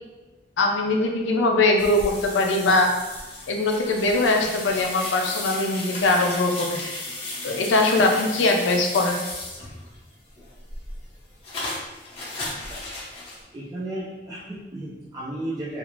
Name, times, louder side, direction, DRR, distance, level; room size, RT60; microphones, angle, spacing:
voice 1, 0.6-2.9 3.5-6.8 7.4-9.2, left 2 dB, 85° left, 2 dB, 0.4 m, -21 dB
sound 1, 1.8-10.0 10.4-13.4, left 2 dB, 30° left, 0.6 m, -35 dB
voice 2, 13.5-15.8, right 1 dB, 20° right, -8 dB, 0.3 m, -34 dB
2.4 x 2.4 x 3.0 m, 1.1 s
head